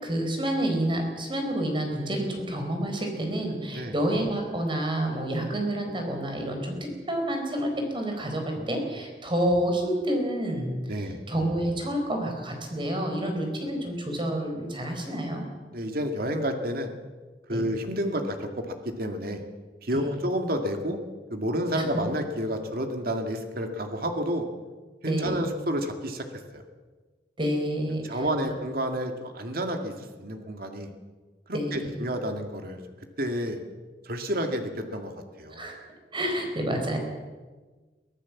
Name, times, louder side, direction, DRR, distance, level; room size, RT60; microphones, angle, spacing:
voice 1, 0.0-15.4 17.5-17.6 19.9-20.1 21.8-21.9 25.0-25.4 27.4-28.5 31.5-31.9 35.5-35.8 36.1-37.0, right 1 dB, 30° right, 3 dB, 4.5 m, -29 dB
voice 2, 10.9-11.2 15.7-16.9 17.5-19.4 19.8-21.0 21.3-24.5 25.0-26.3 26.5-26.6 28.0-30.9 31.5-32.8 33.2-33.6 34.0-35.7, equal, 55° right, 5 dB, 2.2 m, -30 dB
23.5 x 15.0 x 7.3 m, 1.3 s
head